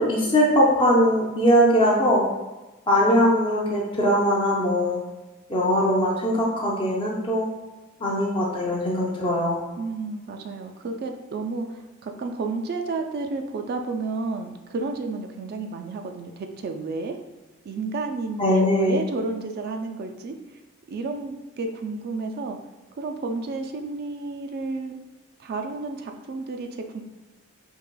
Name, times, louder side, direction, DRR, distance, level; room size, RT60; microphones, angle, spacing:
voice 1, 0.0-2.2 2.9-5.0 5.5-7.5 8.0-9.6 18.4-19.0, equal, 25° left, -4 dB, 0.5 m, -21 dB
voice 2, 9.8-17.2 17.7-20.6 20.9-22.6 23.0-25.0 25.4-27.0, right 3 dB, 45° right, 5 dB, 0.3 m, -31 dB
4.6 x 2.8 x 2.2 m, 1.1 s
head